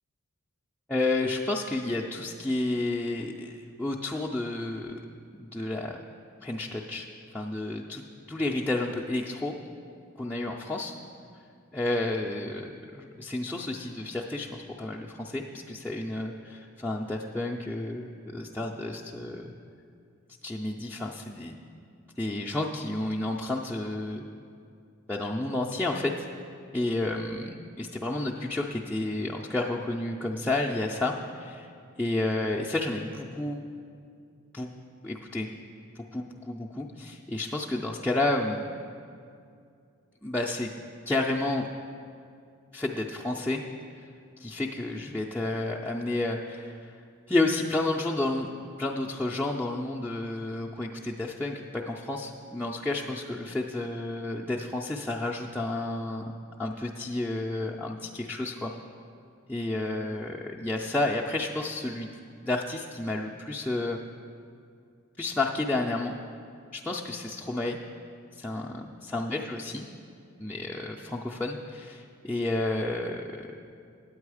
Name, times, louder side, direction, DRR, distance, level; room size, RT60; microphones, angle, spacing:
voice 1, 0.9-3.5 3.8-5.0 5.3-6.0 6.4-7.1 7.3-8.0 8.3-9.6 10.2-10.9 11.7-19.5 20.4-21.6 22.2-24.2 25.1-26.3 26.7-31.7 32.0-33.6 34.5-34.7 35.0-35.5 36.0-38.6 40.2-40.7 41.1-41.7 42.7-43.6 44.4-46.9 47.3-56.3 56.6-58.7 59.5-62.1 62.4-64.0 65.2-66.1 66.7-67.8 68.4-68.9 69.1-69.8 70.4-73.5, left 2 dB, 5° left, -5 dB, 0.3 m, -31 dB
8.8 x 8.6 x 4.8 m, 2.3 s
head